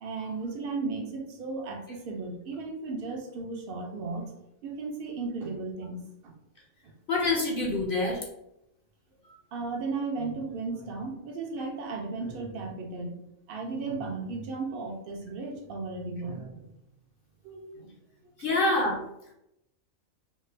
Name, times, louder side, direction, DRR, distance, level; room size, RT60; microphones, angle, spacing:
voice 1, 0.0-4.3 4.6-6.3 9.5-13.2 13.5-16.7 17.4-17.9 18.2-18.3, right 3 dB, 60° right, 2 dB, 0.6 m, -35 dB
voice 2, 7.1-8.2 18.4-19.0, left 2 dB, 55° left, -2 dB, 0.6 m, -26 dB
3.3 x 2.1 x 3.1 m, 0.83 s
omnidirectional pair, 1.4 m